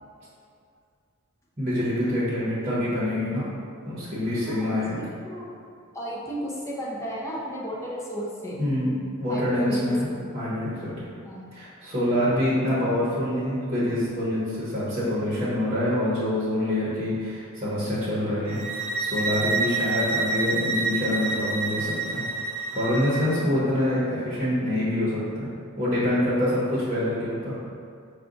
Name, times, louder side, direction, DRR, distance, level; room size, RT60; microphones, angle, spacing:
voice 1, 1.6-3.5 3.8-5.0 8.6-8.9 9.2-10.1 10.3-11.1 11.5-22.2 22.7-25.5 25.8-27.5, left 1 dB, 30° right, -9 dB, 0.9 m, -26 dB
voice 2, 4.5-5.5 5.9-8.6 9.3-10.3 11.2-11.5 19.3-19.7, equal, 15° left, -5 dB, 0.5 m, -34 dB
sound 1, 18.5-23.4, right 3 dB, 65° right, 0.4 m, -28 dB
4.7 x 2.3 x 3.8 m, 2.4 s
head